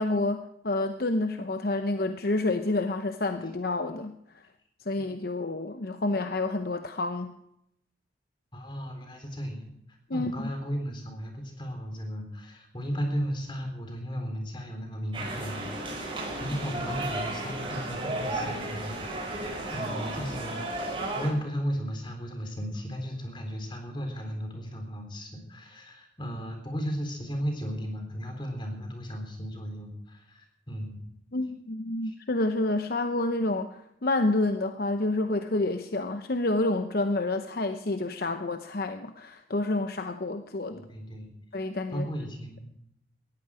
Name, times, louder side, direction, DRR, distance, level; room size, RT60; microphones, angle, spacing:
voice 1, 0.0-4.4 4.9-7.3 10.1-10.5 31.3-40.9 41.5-42.1, left 2 dB, 55° left, 8 dB, 0.8 m, -29 dB
voice 2, 8.5-9.7 10.1-20.7 21.2-31.1 32.0-32.1 40.7-41.3 41.9-42.7, equal, 25° left, 4 dB, 3.7 m, -35 dB
sound 1, 15.1-21.3, right 1 dB, 30° right, 6.2 m, -34 dB
18.5 x 14.5 x 5.0 m, 0.78 s
head